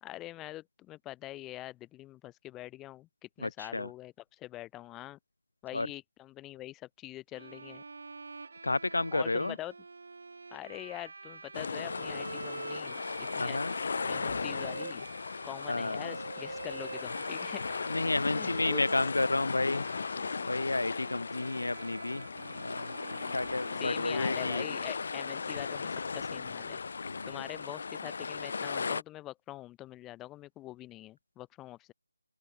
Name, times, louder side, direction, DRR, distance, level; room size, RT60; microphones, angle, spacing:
voice 1, 0.0-5.2 5.6-7.8 9.1-9.7 10.5-13.0 13.3-13.6 14.1-15.1 15.4-17.8 18.3-18.8 23.8-26.8 27.3-31.9, left 16 dB, 10° left, 2.2 m, -44 dB
voice 2, 3.4-3.9 5.7-5.9 8.6-9.5 13.4-13.7 15.7-16.2 17.9-19.8 20.5-22.3 22.6-22.9 23.3-24.6 27.0-27.3, left 2 dB, 75° left, 0.9 m, -31 dB
Bowed string instrument, 7.3-24.5, right 4 dB, 55° right, 3.1 m, -46 dB
sound 1, 11.5-29.0, left 5 dB, 50° left, 3.2 m, -37 dB
open air
figure-of-eight pair, 155°, 0 cm